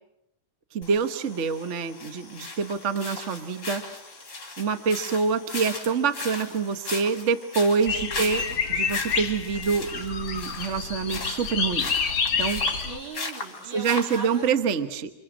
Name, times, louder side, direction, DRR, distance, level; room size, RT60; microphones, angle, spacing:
voice 1, 0.7-3.8 4.6-8.4 8.7-11.9 12.4-12.6 13.7-15.1, right 5 dB, 40° right, 8 dB, 1.3 m, -26 dB
sound 1, 0.8-14.5, left 3 dB, 50° left, 4.2 m, -38 dB
voice 2, 7.8-8.6 12.7-14.4, right 3 dB, 70° right, 2 dB, 4.3 m, -39 dB
sound 2, 7.9-13.0, left 5 dB, 70° left, 2.5 m, -28 dB
29.0 x 27.5 x 6.3 m, 0.83 s
omnidirectional pair, 2.3 m